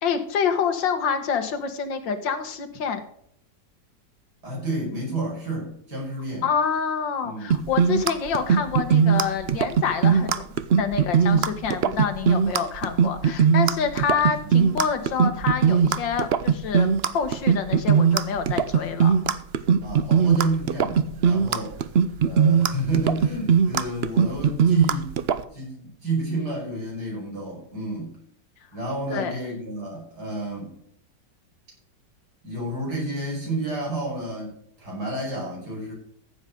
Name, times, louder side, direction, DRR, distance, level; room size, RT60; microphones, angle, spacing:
voice 1, 0.0-3.0 6.4-10.3 10.8-19.1 29.1-29.3, left 6 dB, 90° left, 8 dB, 2.0 m, -27 dB
voice 2, 4.4-6.5 7.2-7.7 14.4-14.5 19.8-21.8 22.2-25.2 25.5-28.2 28.7-30.8 32.4-35.9, right 2 dB, 60° right, -2 dB, 6.0 m, -30 dB
sound 1, 7.5-25.4, right 7 dB, 80° right, 0.5 m, -20 dB
14.5 x 8.1 x 3.8 m, 0.67 s
omnidirectional pair, 1.9 m